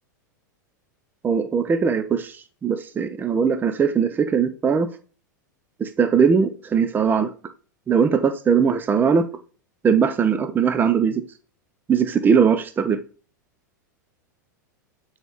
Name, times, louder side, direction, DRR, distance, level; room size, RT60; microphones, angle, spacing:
voice 1, 1.2-2.3 2.6-4.9 5.8-7.3 7.9-9.3 9.8-11.2 11.9-13.0, right 6 dB, 20° right, 0.5 m, -20 dB
7.9 x 4.0 x 3.1 m
figure-of-eight pair, 95°, 10 cm